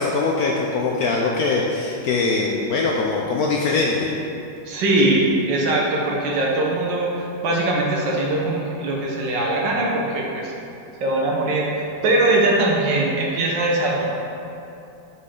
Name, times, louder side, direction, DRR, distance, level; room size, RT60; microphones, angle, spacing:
voice 1, 0.0-4.1, left 3 dB, 70° left, -2 dB, 0.9 m, -22 dB
voice 2, 4.6-10.5 11.0-14.0, right 2 dB, 75° right, -2 dB, 1.6 m, -21 dB
7.3 x 4.2 x 3.7 m, 2.7 s
omnidirectional pair, 2.0 m